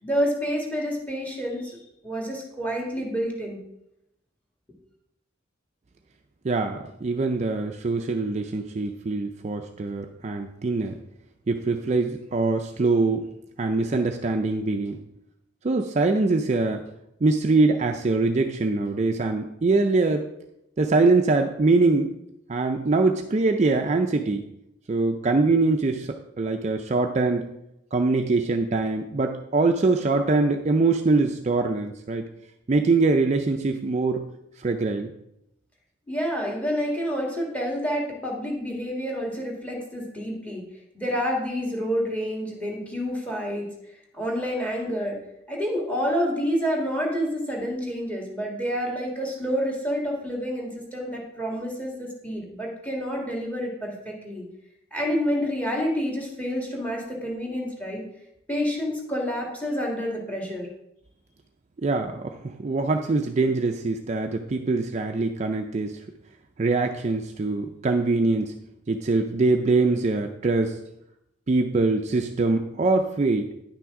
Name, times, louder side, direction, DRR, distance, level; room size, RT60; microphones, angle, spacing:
voice 1, 0.0-3.6 36.1-40.7 40.9-43.7 44.1-45.2 45.5-54.4 54.9-58.0 58.5-60.7, equal, 5° left, -1 dB, 1.6 m, -28 dB
voice 2, 6.4-10.9 11.5-13.3 13.6-15.0 15.6-16.8 17.2-20.3 20.8-22.1 22.5-24.4 24.9-27.5 27.9-32.3 32.7-34.2 34.6-35.1 61.8-66.0 66.6-68.5 68.9-70.8 71.5-73.5, right 3 dB, 35° right, 5 dB, 0.4 m, -23 dB
9.9 x 5.9 x 3.6 m, 0.82 s
head